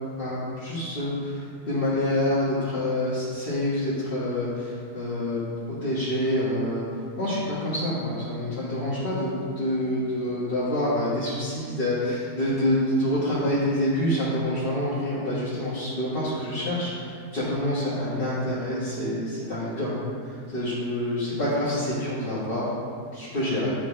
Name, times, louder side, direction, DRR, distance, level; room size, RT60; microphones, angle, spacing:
voice 1, 0.1-5.4 5.7-6.8 7.2-20.0 20.2-22.7 23.1-23.7, left 1 dB, 35° left, -12 dB, 1.5 m, -27 dB
10.5 x 4.1 x 3.2 m, 2.2 s
omnidirectional pair, 1.8 m